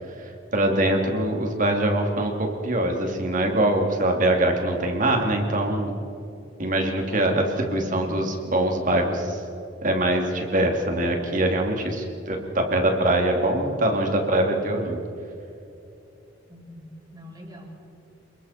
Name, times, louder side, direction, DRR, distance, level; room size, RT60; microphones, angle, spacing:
voice 1, 0.5-6.0 6.6-9.4 9.8-15.0, right 1 dB, 45° right, 2 dB, 3.0 m, -23 dB
voice 2, 7.8-8.1 16.5-17.7, left 1 dB, 20° right, -2 dB, 6.0 m, -43 dB
30.0 x 22.0 x 4.5 m, 2.7 s
head